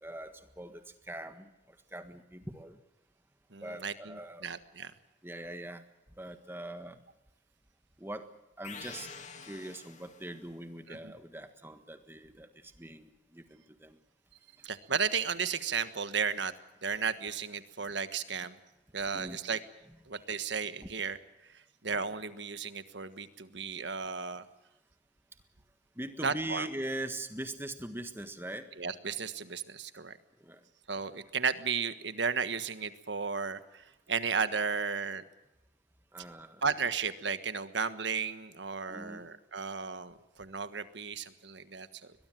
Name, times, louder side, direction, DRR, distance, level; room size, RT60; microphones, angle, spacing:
voice 1, 0.0-2.8 3.6-4.5 5.2-5.8 6.2-7.0 8.0-8.3 8.6-9.1 9.4-14.0 19.1-19.4 20.1-20.2 26.0-28.7 30.4-30.6 36.1-36.6 38.9-39.2, right 1 dB, 10° right, 8 dB, 1.5 m, -42 dB
voice 2, 3.5-4.9 10.9-11.1 14.6-16.5 16.8-18.6 18.9-19.6 20.1-21.2 21.5-24.4 26.2-26.7 28.8-30.2 30.9-35.2 36.6-42.1, right 5 dB, 70° right, 11 dB, 1.4 m, -34 dB
sound 1, 8.6-10.5, left 5 dB, 40° left, 2.3 m, -47 dB
22.5 x 21.0 x 7.6 m, 0.98 s
head